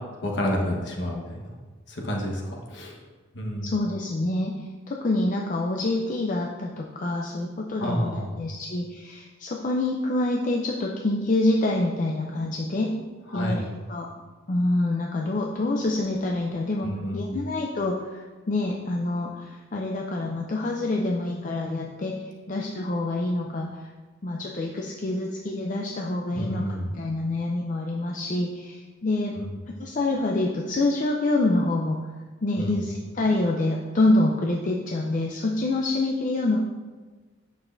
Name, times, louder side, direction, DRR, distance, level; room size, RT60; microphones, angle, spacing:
voice 1, 0.2-1.4 1.9-2.9 3.3-3.7 7.8-8.3 13.3-13.6 16.8-17.3 26.3-26.9 29.4-29.6 32.6-32.7, equal, 60° left, -1 dB, 1.2 m, -29 dB
voice 2, 3.6-12.9 13.3-14.1 14.5-23.8 24.2-29.3 29.8-32.1 32.4-36.6, left 2 dB, 40° left, 0 dB, 0.4 m, -26 dB
8.2 x 6.2 x 2.6 m, 1.4 s
head